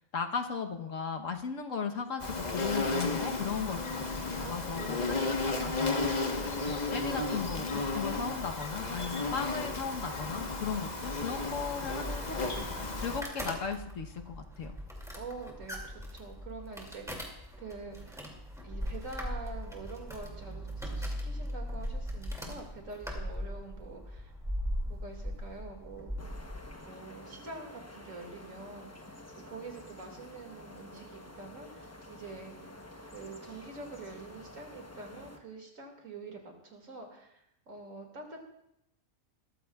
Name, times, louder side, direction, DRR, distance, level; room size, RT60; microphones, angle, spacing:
voice 1, 0.0-5.0 5.4-6.3 6.7-12.7 13.0-14.8, left 6 dB, 70° left, 5 dB, 1.4 m, -37 dB
Insect, 2.2-13.2, left 3 dB, 30° left, 1.3 m, -33 dB
voice 2, 4.4-5.9 15.1-18.2 18.6-24.3 24.8-26.1 26.8-29.1 29.5-32.7 33.1-38.4, right 3 dB, 70° right, 2 dB, 2.7 m, -46 dB
sound 1, 11.6-26.7, equal, ahead, 2.4 m, -39 dB
sound 2, 26.2-35.4, left 1 dB, 15° left, 0.8 m, -50 dB
21.5 x 14.0 x 2.4 m, 0.82 s
omnidirectional pair, 1.4 m